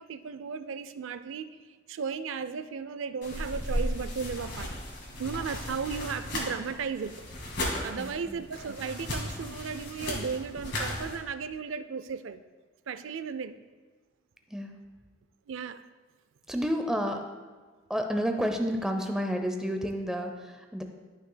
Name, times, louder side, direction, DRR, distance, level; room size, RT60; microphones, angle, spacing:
voice 1, 0.0-1.6 1.9-4.7 5.2-7.2 7.8-12.4 12.9-13.6 15.5-15.8, right 6 dB, 85° right, 12 dB, 0.4 m, -35 dB
sound 1, 3.2-11.2, left 1 dB, 60° left, 1.9 m, -35 dB
voice 2, 7.9-8.4 14.5-14.8 16.5-17.2 17.9-20.8, equal, 5° right, 4 dB, 0.5 m, -30 dB
12.5 x 6.1 x 2.2 m, 1.4 s
head